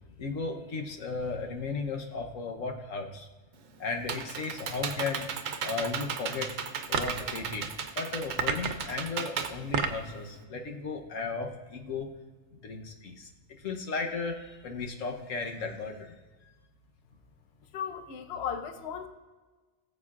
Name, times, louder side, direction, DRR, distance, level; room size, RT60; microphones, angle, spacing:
voice 1, 0.2-3.3 3.8-5.3 5.6-6.5 6.9-7.7 7.9-12.1 12.6-13.3 13.6-16.2, left 4 dB, 85° left, 3 dB, 1.4 m, -35 dB
Computer keyboard, 3.5-10.4, right 6 dB, 90° right, 1.1 m, -36 dB
sound 1, 6.9-7.3 8.4-8.9 9.5-10.1, right 6 dB, 70° right, 1.0 m, -30 dB
voice 2, 17.7-19.1, left 8 dB, 60° left, 7 dB, 0.9 m, -36 dB
18.5 x 7.5 x 2.5 m, 1.3 s
omnidirectional pair, 1.3 m